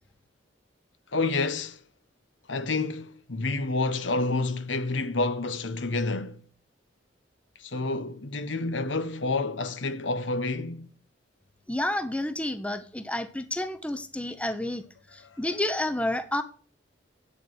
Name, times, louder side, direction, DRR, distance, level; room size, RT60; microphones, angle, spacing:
voice 1, 1.1-1.8 2.5-6.4 7.6-10.9, left 3 dB, 80° left, 1.1 m, -29 dB
voice 2, 11.7-14.8 15.1-16.4, left 1 dB, 5° left, 0.8 m, -30 dB
9.0 x 7.1 x 8.1 m
head